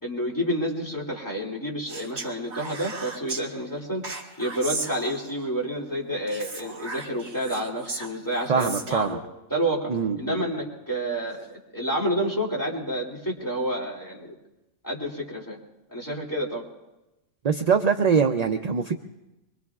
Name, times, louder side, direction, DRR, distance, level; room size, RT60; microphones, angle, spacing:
voice 1, 0.0-4.0 4.4-9.2 9.5-9.9 10.2-14.3 14.8-15.6 15.9-16.6, right 1 dB, 15° left, -4 dB, 2.5 m, -29 dB
Speech, 1.9-3.4 4.0-5.5 6.3-9.1, right 3 dB, 65° right, 1.9 m, -36 dB
voice 2, 8.5-9.2 9.9-10.4 17.4-18.9, right 6 dB, 50° right, 6 dB, 0.5 m, -23 dB
25.5 x 22.5 x 2.4 m, 1.0 s
omnidirectional pair, 1.3 m